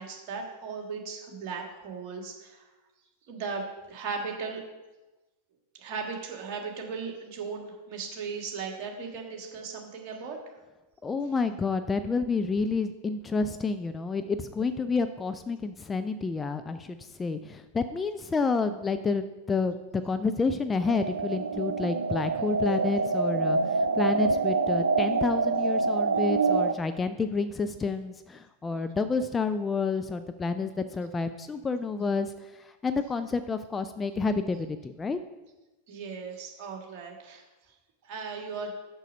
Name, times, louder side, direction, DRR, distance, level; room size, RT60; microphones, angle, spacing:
voice 1, 0.0-2.6 3.3-4.6 5.8-10.4 35.9-37.4 38.0-38.7, right 5 dB, 40° right, 1 dB, 1.6 m, -37 dB
voice 2, 11.0-32.3 32.6-35.2, left 4 dB, 15° left, 9 dB, 0.3 m, -29 dB
sound 1, 20.9-26.7, right 4 dB, 70° right, 0.4 m, -26 dB
6.5 x 6.2 x 5.1 m, 1.1 s
figure-of-eight pair, 90°, 0 cm